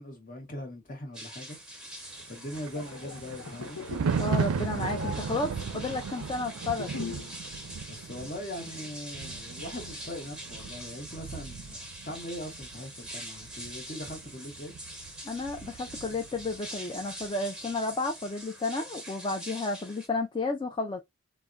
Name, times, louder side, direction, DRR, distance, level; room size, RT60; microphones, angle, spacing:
voice 1, 0.0-1.6 2.2-3.8 7.9-11.8 12.0-14.8, left 1 dB, 40° left, 1.0 m, -41 dB
sound 1, 1.1-20.1, right 1 dB, 5° right, 1.0 m, -44 dB
Thunder, 2.1-16.7 17.0-17.3, right 5 dB, 80° right, 0.4 m, -36 dB
sound 2, 2.5-7.4 7.6-7.9, left 5 dB, 85° left, 0.5 m, -42 dB
voice 2, 4.2-6.9 15.2-21.0, left 3 dB, 20° left, 0.3 m, -32 dB
3.5 x 2.1 x 2.4 m
head